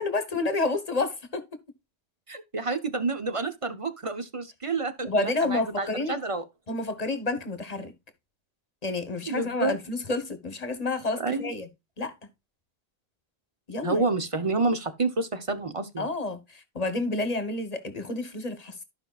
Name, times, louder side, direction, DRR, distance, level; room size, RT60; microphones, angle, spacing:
voice 1, 0.0-1.4 5.0-6.2 6.7-7.9 8.8-11.7 12.0-12.1 13.7-14.0 16.0-18.8, left 2 dB, 40° left, 1.3 m, -29 dB
voice 2, 2.3-6.4 9.3-9.8 11.2-11.5 13.8-16.1, right 3 dB, 35° right, 0.8 m, -29 dB
14.0 x 5.3 x 2.3 m
omnidirectional pair, 1.1 m